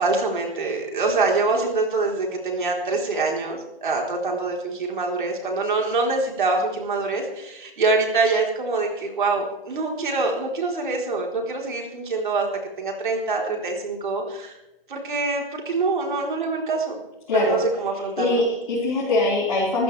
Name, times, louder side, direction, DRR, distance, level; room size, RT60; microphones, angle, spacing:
voice 1, 0.0-12.5 12.8-14.6 14.9-17.0 17.3-18.4, right 3 dB, 55° right, 1 dB, 4.0 m, -25 dB
voice 2, 17.3-17.6 18.2-19.8, left 2 dB, 35° left, -7 dB, 4.8 m, -22 dB
19.0 x 14.5 x 3.4 m, 0.93 s
hypercardioid pair, 170°, 30 cm